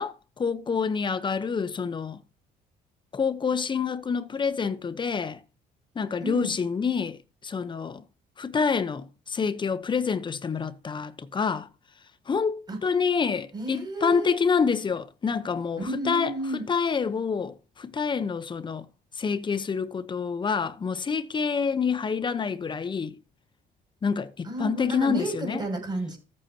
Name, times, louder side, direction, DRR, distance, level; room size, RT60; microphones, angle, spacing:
voice 1, 0.0-2.2 3.1-5.4 5.9-8.0 8.4-11.7 12.3-16.3 16.7-18.8 19.2-23.2 24.0-25.6, left 5 dB, 30° left, 0.9 m, -27 dB
voice 2, 6.2-6.6 12.7-12.8 13.5-14.4 15.8-16.7 24.4-26.2, right 1 dB, 25° right, 6.7 m, -32 dB
14.0 x 8.7 x 2.9 m
cardioid pair, 110°, 17 cm